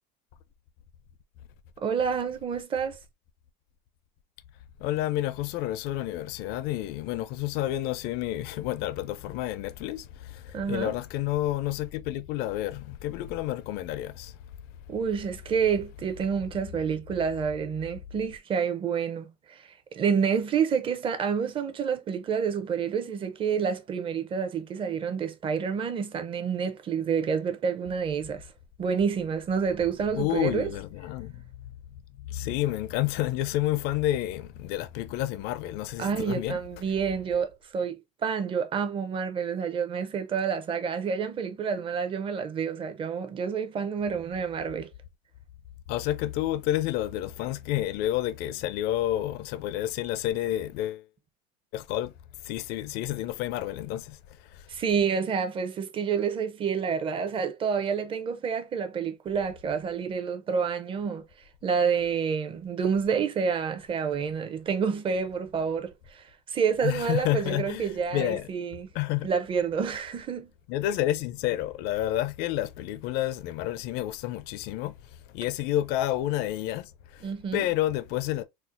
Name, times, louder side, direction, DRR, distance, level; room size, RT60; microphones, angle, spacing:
voice 1, 1.8-3.0 10.5-10.9 14.9-28.5 28.8-30.7 36.0-44.9 54.7-61.2 61.6-68.9 69.2-70.5 77.2-77.7, right 6 dB, 25° right, 0.5 m, -28 dB
voice 2, 4.8-14.3 30.1-31.4 32.2-36.6 45.9-51.0 51.7-52.1 52.4-54.2 54.5-54.7 66.8-68.5 68.9-69.3 70.7-74.9 75.3-78.4, left 14 dB, 55° left, 0.4 m, -30 dB
4.2 x 2.0 x 2.4 m
supercardioid pair, 135°, 21 cm